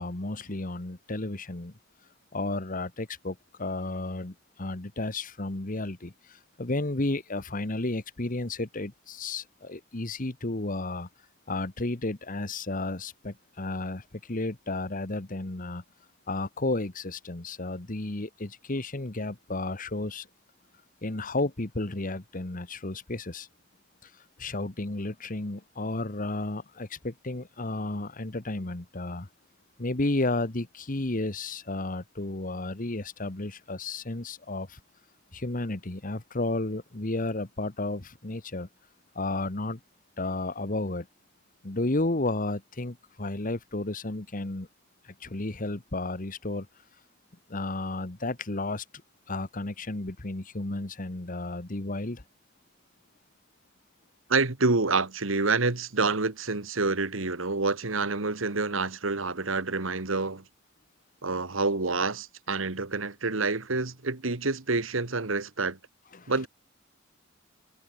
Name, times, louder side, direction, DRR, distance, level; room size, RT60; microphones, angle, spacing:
voice 1, 0.0-1.7 2.3-11.1 11.5-15.8 16.3-20.3 21.0-23.5 24.0-24.1 24.4-29.3 29.8-34.8 35.3-38.7 39.1-39.8 40.2-41.1 41.6-44.7 45.0-46.7 47.5-48.8 49.3-52.2 66.1-66.3, left 2 dB, 40° left, 1.4 m, -32 dB
voice 2, 54.3-60.4 61.2-65.8 66.3-66.5, right 3 dB, 80° right, 1.8 m, -27 dB
head